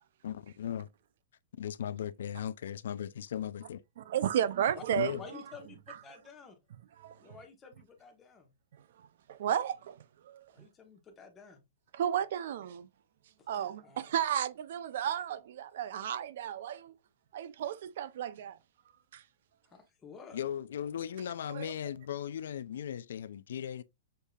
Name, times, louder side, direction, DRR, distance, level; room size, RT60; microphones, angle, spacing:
voice 1, 0.2-0.9 1.6-3.8 5.0-5.2 20.3-23.8, left 9 dB, 75° left, 0.3 m, -37 dB
voice 2, 4.0-5.4 7.0-7.3 9.0-10.7 11.9-12.9 13.5-16.9 17.3-18.6 19.1-19.2 21.5-21.7, right 10 dB, 60° right, 0.4 m, -33 dB
voice 3, 5.2-6.6 7.2-8.5 10.5-11.6 13.8-14.1 19.7-20.4, left 6 dB, 15° left, 0.9 m, -51 dB
6.5 x 2.7 x 2.3 m
hypercardioid pair, 165°, 0 cm